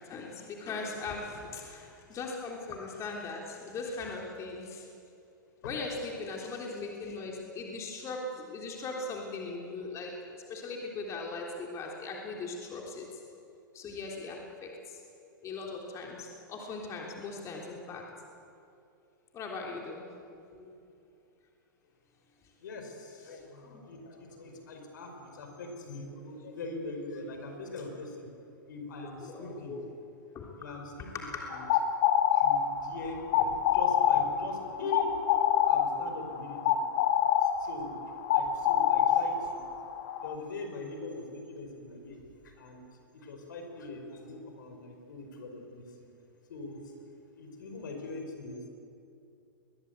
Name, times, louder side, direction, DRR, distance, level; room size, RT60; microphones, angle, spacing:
voice 1, 0.0-4.9 5.6-13.1 13.7-15.0 15.4-18.0 19.3-20.1 20.5-20.7 23.7-23.8 29.2-29.9 30.3-30.5 31.1-31.4, left 3 dB, 30° left, -1 dB, 3.4 m, -39 dB
voice 2, 22.6-28.3 28.7-29.8 30.6-31.6 32.3-35.2 35.7-36.8 37.4-37.9 38.3-39.6 40.2-42.9 43.1-46.1 46.5-46.9 47.4-48.7, left 2 dB, 65° left, 4 dB, 5.1 m, -42 dB
sound 1, 31.5-40.3, left 9 dB, 50° left, 1.9 m, -26 dB
21.5 x 21.0 x 8.2 m, 2.6 s
hypercardioid pair, 110°, 11 cm